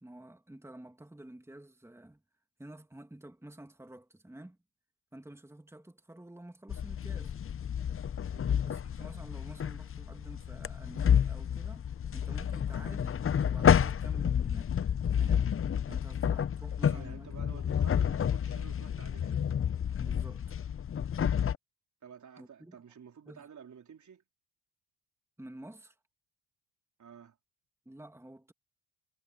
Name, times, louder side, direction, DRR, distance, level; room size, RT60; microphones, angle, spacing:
voice 1, 0.0-2.2 2.6-4.6 5.1-7.4 8.6-14.7 15.1-15.6 15.9-17.8 20.0-20.6 22.4-22.7 23.3-23.4 25.4-26.0 27.8-28.5, right 1 dB, 5° right, 2.7 m, -50 dB
sound 1, 6.7-21.5, left 8 dB, 35° left, 0.9 m, -30 dB
voice 2, 8.3-8.6 16.9-19.5 22.0-24.2 27.0-27.4, right 7 dB, 45° right, 4.2 m, -51 dB
hypercardioid pair, 55°, 40 cm